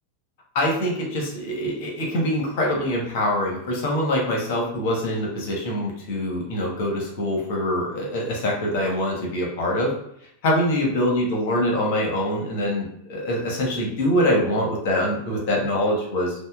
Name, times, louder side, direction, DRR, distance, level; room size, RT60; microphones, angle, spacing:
voice 1, 0.5-9.9 10.4-16.3, left 1 dB, 50° left, -1 dB, 1.0 m, -24 dB
5.3 x 2.1 x 2.4 m, 0.73 s
figure-of-eight pair, 90°, 0 cm